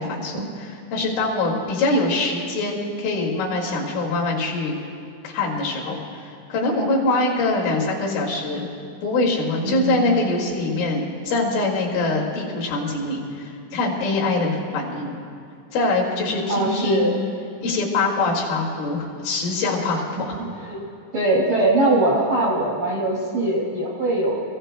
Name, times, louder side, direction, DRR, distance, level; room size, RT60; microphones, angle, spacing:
voice 1, 0.0-4.7 5.2-8.7 9.0-15.1 15.7-17.2 17.6-20.4, left 2 dB, 70° left, -3 dB, 4.6 m, -24 dB
voice 2, 9.6-10.1 16.5-17.1 20.6-20.8 21.1-24.4, right 2 dB, 70° right, -5 dB, 1.2 m, -21 dB
28.0 x 16.5 x 2.2 m, 2.3 s
omnidirectional pair, 5.9 m